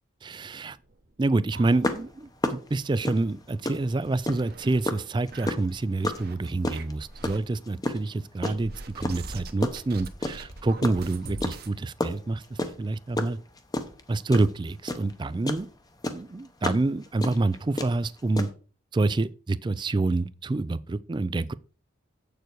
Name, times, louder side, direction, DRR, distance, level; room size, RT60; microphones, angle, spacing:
voice 1, 0.2-0.8 1.2-13.4 14.1-15.7 16.1-18.5 18.9-21.5, right 2 dB, 20° right, 0.3 m, -27 dB
sound 1, 0.8-2.4 2.7-2.8 3.2-3.3 3.9-4.8 5.3-6.4 6.7-7.4 8.4-11.7, right 2 dB, 50° right, 1.0 m, -43 dB
sound 2, 1.8-4.5 4.8-8.6 9.0-10.5 10.8-15.7 16.0-18.5, left 1 dB, 20° left, 0.8 m, -30 dB
7.9 x 6.9 x 4.6 m
head